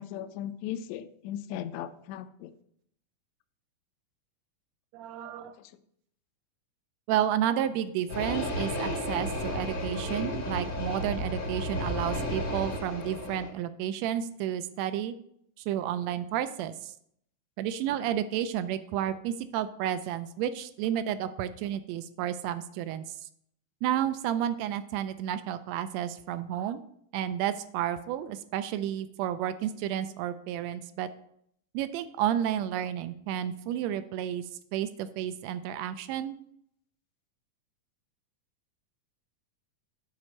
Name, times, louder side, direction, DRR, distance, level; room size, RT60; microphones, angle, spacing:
voice 1, 0.0-2.5 5.6-5.7, left 10 dB, 80° left, 10 dB, 1.7 m, -37 dB
voice 2, 4.9-5.5 7.1-15.1 15.7-16.9 17.6-23.0 23.8-26.8 27.1-31.1 31.7-34.4 34.7-36.3, right 10 dB, 80° right, 11 dB, 1.6 m, -31 dB
sound 1, 8.1-13.5, left 1 dB, 60° left, 0.9 m, -33 dB
9.5 x 4.2 x 6.5 m, 0.70 s
omnidirectional pair, 3.6 m